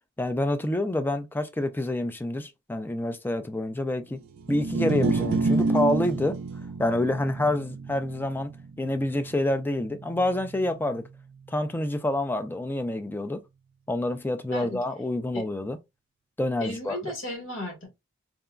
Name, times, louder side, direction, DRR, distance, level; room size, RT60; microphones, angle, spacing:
voice 1, 0.2-4.2 4.5-6.4 6.8-8.5 8.8-11.0 11.5-13.4 13.9-15.8 16.4-17.1, left 1 dB, 10° left, 0.3 m, -27 dB
sound 1, 4.4-10.7, right 3 dB, 70° right, 0.3 m, -30 dB
voice 2, 16.6-17.9, left 1 dB, 70° left, 1.4 m, -34 dB
3.7 x 2.1 x 2.4 m
head